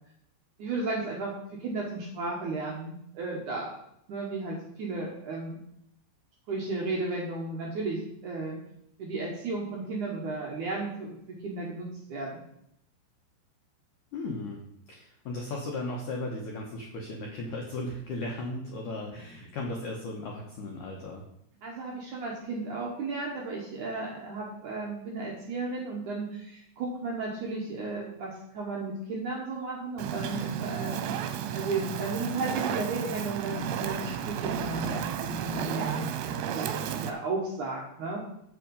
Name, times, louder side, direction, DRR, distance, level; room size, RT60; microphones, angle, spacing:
voice 1, 0.6-3.7 4.1-5.6 6.5-8.6 9.0-11.2 11.4-12.4 21.6-31.0 31.5-38.2, right 3 dB, 70° right, -2 dB, 1.9 m, -34 dB
voice 2, 14.1-21.2, left 2 dB, 80° left, 0 dB, 1.8 m, -36 dB
Fire, 30.0-37.1, right 9 dB, 85° right, 3.0 m, -32 dB
7.8 x 7.6 x 5.3 m, 0.75 s
omnidirectional pair, 5.2 m